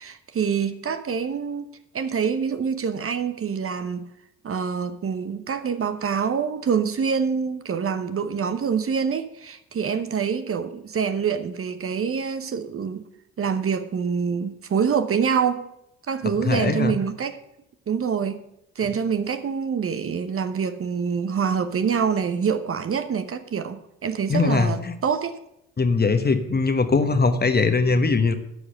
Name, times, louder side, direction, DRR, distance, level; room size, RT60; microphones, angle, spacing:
voice 1, 0.0-1.7 1.9-4.1 4.4-13.0 13.4-15.7 16.1-17.3 17.9-18.4 18.8-25.4, right 6 dB, 40° right, 1.0 m, -26 dB
voice 2, 16.4-17.0 24.3-24.9 25.8-28.3, left 4 dB, 30° left, 1.3 m, -21 dB
13.0 x 4.9 x 7.8 m
hypercardioid pair, 50°, 33 cm